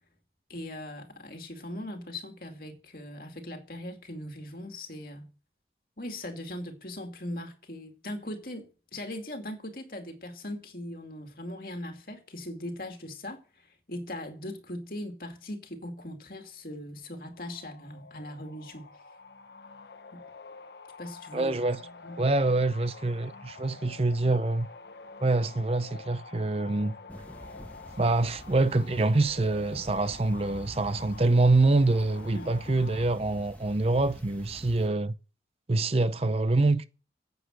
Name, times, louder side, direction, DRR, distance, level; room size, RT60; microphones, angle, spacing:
voice 1, 0.5-5.3 6.0-18.9 20.1-20.2 21.0-21.6 22.0-22.2 32.3-32.5, left 1 dB, 55° left, 2.3 m, -40 dB
sound 1, 17.3-33.1, left 4 dB, 75° left, 0.9 m, -47 dB
voice 2, 21.3-21.8 22.2-24.7 25.2-27.0 28.0-35.1 35.7-36.9, right 2 dB, 35° right, 0.6 m, -25 dB
sound 2, 27.1-34.9, equal, 10° left, 1.6 m, -47 dB
9.9 x 8.1 x 7.6 m
head